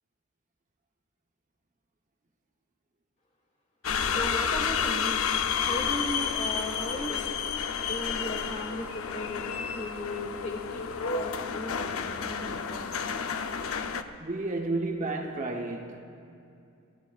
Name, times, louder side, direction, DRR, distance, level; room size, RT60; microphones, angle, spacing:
sound 1, 3.8-14.0, left 6 dB, 85° left, 0.7 m, -30 dB
voice 1, 4.1-5.2 5.5-7.2 7.8-9.5 9.7-10.8 11.1-12.9, left 1 dB, 35° left, 2.3 m, -36 dB
voice 2, 14.2-16.0, right 2 dB, 35° right, 0.9 m, -31 dB
30.0 x 15.5 x 2.4 m
head